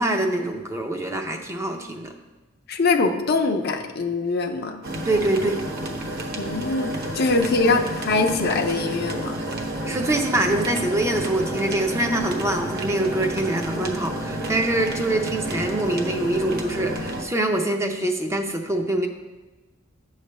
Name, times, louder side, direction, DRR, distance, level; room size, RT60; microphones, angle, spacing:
voice 1, 0.0-2.1 5.0-5.6 7.6-7.8 9.9-19.1, right 1 dB, 15° right, 3 dB, 0.6 m, -24 dB
voice 2, 2.7-4.8 6.4-9.4, left 3 dB, 55° left, 4 dB, 0.6 m, -23 dB
sound 1, 4.8-17.2, right 1 dB, 50° right, 0.9 m, -30 dB
8.9 x 3.2 x 6.7 m, 1.2 s
head